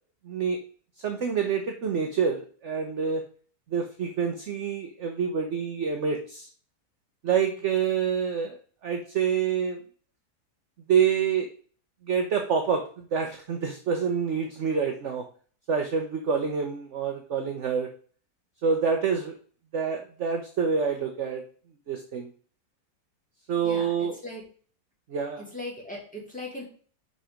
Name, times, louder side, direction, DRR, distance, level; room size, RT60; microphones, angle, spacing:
voice 1, 0.2-0.6 1.0-3.2 3.7-6.5 7.2-8.6 8.8-9.8 10.9-11.5 12.0-15.2 15.7-17.9 18.6-19.4 19.7-21.4 21.9-22.3 23.5-24.2 25.1-25.4, right 6 dB, 50° right, 4 dB, 1.1 m, -27 dB
voice 2, 23.6-24.4 25.4-26.6, left 1 dB, 5° left, -4 dB, 3.0 m, -39 dB
5.6 x 5.4 x 5.0 m, 0.42 s
omnidirectional pair, 1.8 m